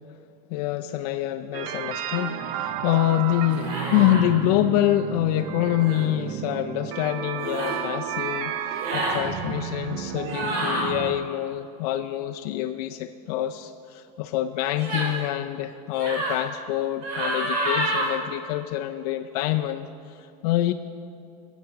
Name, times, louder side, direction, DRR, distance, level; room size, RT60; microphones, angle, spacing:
voice 1, 0.5-20.7, left 14 dB, 75° left, 7 dB, 0.5 m, -26 dB
sound 1, 1.5-11.1, right 10 dB, 60° right, 0.7 m, -32 dB
sound 2, 3.5-4.2 5.8-6.0 7.4-7.8 8.7-9.2 10.2-10.9 14.8-15.2 15.9-16.4 17.0-18.1, right 1 dB, 75° right, 3.5 m, -28 dB
14.5 x 8.2 x 5.9 m, 2.6 s
supercardioid pair, 145°, 20 cm